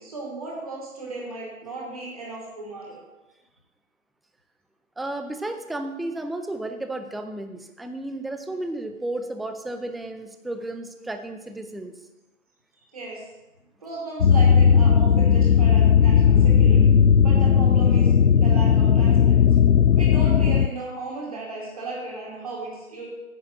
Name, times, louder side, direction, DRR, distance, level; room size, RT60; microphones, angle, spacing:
voice 1, 0.0-3.0 12.9-13.2 13.8-16.9 17.2-19.5 20.0-23.1, right 2 dB, 25° right, -3 dB, 2.2 m, -35 dB
voice 2, 5.0-11.9, right 2 dB, ahead, 7 dB, 0.3 m, -33 dB
sound 1, 14.2-20.7, left 7 dB, 90° left, 0.6 m, -16 dB
9.2 x 6.3 x 6.3 m, 1.0 s
figure-of-eight pair, 155°, 42 cm